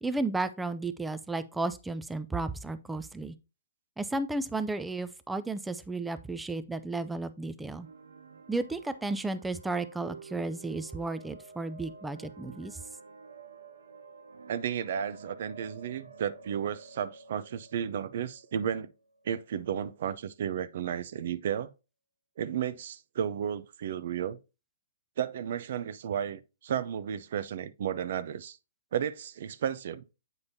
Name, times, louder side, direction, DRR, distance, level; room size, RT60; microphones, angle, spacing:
voice 1, 0.0-3.4 4.0-7.9 8.5-12.8, right 2 dB, 5° right, 0.4 m, -33 dB
sound 1, 7.7-19.4, right 4 dB, 85° right, 0.9 m, -51 dB
voice 2, 14.5-18.9 19.2-21.7 22.4-24.4 25.2-28.6 28.9-30.1, right 9 dB, 60° right, 0.6 m, -33 dB
8.1 x 5.3 x 2.7 m
hypercardioid pair, 145°, 0 cm